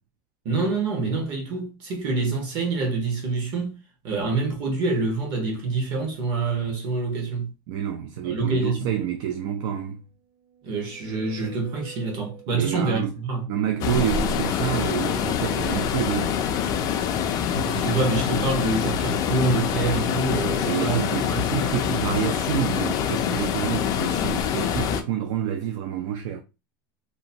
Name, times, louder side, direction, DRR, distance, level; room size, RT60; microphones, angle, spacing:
voice 1, 0.4-3.8 4.0-7.5 8.2-8.9 10.6-13.5 17.4-21.4, right 3 dB, 40° right, 1.1 m, -26 dB
voice 2, 7.7-10.0 12.5-13.1 13.5-16.4 20.6-26.4, right 10 dB, 60° right, 0.4 m, -28 dB
sound 1, 10.1-13.1, right 12 dB, 85° right, 1.3 m, -48 dB
sound 2, 13.8-25.0, left 8 dB, 30° left, 0.3 m, -25 dB
2.8 x 2.2 x 2.7 m
supercardioid pair, 150°, 12 cm